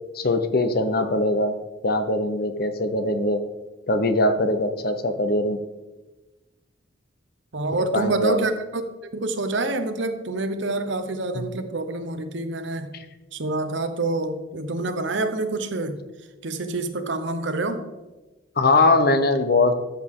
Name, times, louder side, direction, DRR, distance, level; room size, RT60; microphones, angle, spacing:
voice 1, 0.1-1.5 1.8-3.4 3.9-5.6 7.9-8.4 11.3-11.5 18.6-19.8, left 2 dB, 50° left, 9 dB, 0.7 m, -21 dB
voice 2, 7.5-12.9 13.3-16.0 16.4-17.9, right 2 dB, 60° right, 9 dB, 0.9 m, -27 dB
13.0 x 6.5 x 3.7 m, 1.1 s
head